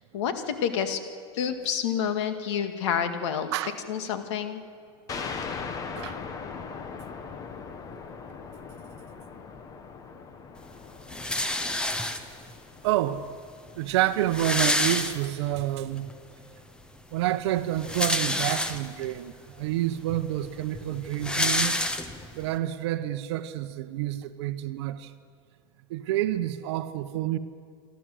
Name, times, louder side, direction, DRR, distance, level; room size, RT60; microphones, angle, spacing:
voice 1, 0.1-1.0 1.3-3.5 3.9-4.6, left 8 dB, 70° left, 2.0 m, -28 dB
sound 1, 5.1-14.3, left 5 dB, 20° left, 1.2 m, -40 dB
sound 2, 11.1-12.5 13.4-13.5 13.7-13.8 14.0-15.6 16.1-16.2 17.6-19.1 19.7-19.8 20.1-22.4, left 1 dB, 5° left, 0.9 m, -28 dB
voice 2, 12.8-13.3 13.7-16.1 17.1-21.8 22.3-25.1 25.9-27.4, right 13 dB, 65° right, 1.0 m, -28 dB
27.0 x 12.5 x 7.8 m
supercardioid pair, 155°, 15 cm